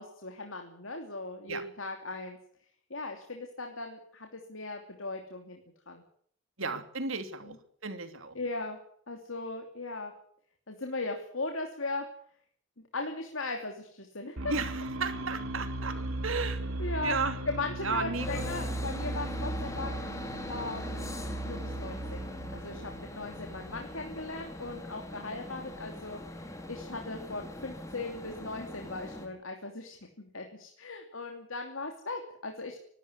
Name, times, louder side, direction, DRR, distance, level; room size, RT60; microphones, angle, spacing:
voice 1, 0.0-2.4 2.9-5.6 5.9-6.0 6.7-6.8 7.4-7.6 8.3-8.8 9.1-10.1 10.7-12.0 12.9-14.5 16.8-17.2 17.5-20.0 20.5-21.1 21.4-32.8, left 2 dB, 65° left, 3 dB, 2.8 m, -38 dB
voice 2, 6.6-7.5 7.8-8.3 14.5-15.9 16.2-16.6 17.0-17.4 17.8-18.4, right 4 dB, 70° right, 9 dB, 2.8 m, -33 dB
sound 1, 14.4-24.0, right 1 dB, 90° right, 3.3 m, -37 dB
sound 2, 18.2-29.3, left 1 dB, 15° left, 2.9 m, -41 dB
24.5 x 13.0 x 9.9 m, 0.64 s
head